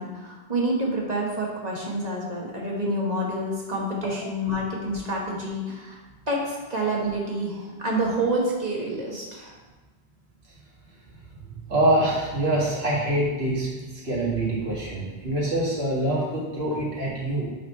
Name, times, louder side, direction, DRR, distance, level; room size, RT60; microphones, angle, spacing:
voice 1, 0.0-6.0 6.3-9.5, right 1 dB, 40° right, -3 dB, 1.6 m, -28 dB
voice 2, 11.7-17.5, right 1 dB, 70° right, -5 dB, 2.2 m, -25 dB
7.7 x 4.0 x 5.5 m, 1.3 s
omnidirectional pair, 1.1 m